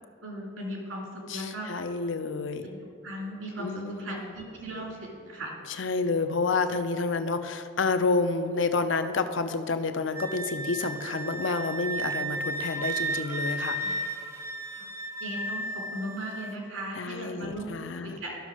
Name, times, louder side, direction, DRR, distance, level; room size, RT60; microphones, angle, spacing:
voice 1, 0.2-1.7 2.6-2.8 3.0-5.5 13.8-13.9 14.8-14.9 15.2-17.7 18.0-18.4, right 1 dB, 75° right, -2 dB, 2.7 m, -37 dB
voice 2, 1.3-2.7 3.6-4.3 5.7-13.8 17.0-18.2, left 4 dB, 65° left, 9 dB, 0.6 m, -29 dB
Wind instrument woodwind instrument, 10.1-16.5, right 2 dB, 10° right, 0.4 m, -34 dB
12.5 x 6.3 x 4.9 m, 2.4 s
head